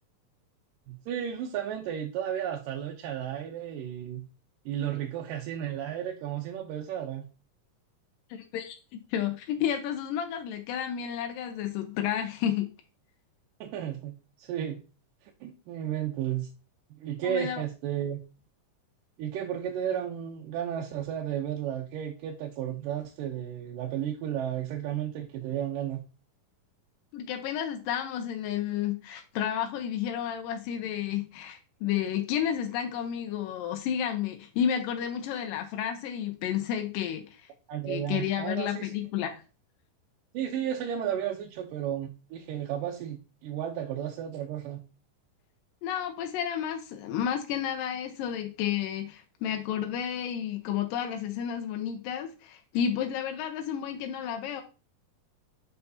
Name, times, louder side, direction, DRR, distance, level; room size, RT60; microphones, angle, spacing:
voice 1, 0.9-4.3 4.7-7.3 13.6-14.8 15.2-16.5 17.0-18.2 19.2-26.0 37.7-38.9 40.3-44.8, right 10 dB, 85° right, 2.4 m, -33 dB
voice 2, 8.3-12.7 17.2-17.6 27.1-37.5 37.9-39.4 45.8-54.6, left 9 dB, 90° left, 2.4 m, -31 dB
6.8 x 5.6 x 2.7 m
omnidirectional pair, 3.8 m